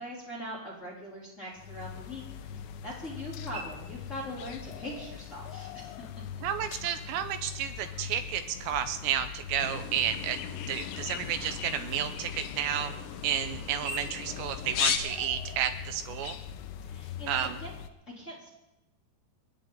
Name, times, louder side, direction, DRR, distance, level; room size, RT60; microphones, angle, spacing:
voice 1, 0.0-2.6 2.8-5.9 6.7-6.8 16.8-17.7 18.1-18.5, equal, 20° left, -5 dB, 2.9 m, -41 dB
sound 1, 1.6-17.9, left 8 dB, 85° left, 3.1 m, -42 dB
sound 2, 3.2-17.4, right 2 dB, 65° right, 6.3 m, -51 dB
voice 2, 6.4-10.4 10.7-12.9 13.2-16.4 17.3-17.6, right 9 dB, 80° right, 9 dB, 3.1 m, -31 dB
sound 3, 9.6-15.0, left 8 dB, 70° left, 2.3 m, -36 dB
29.5 x 10.0 x 3.9 m, 0.94 s
omnidirectional pair, 5.0 m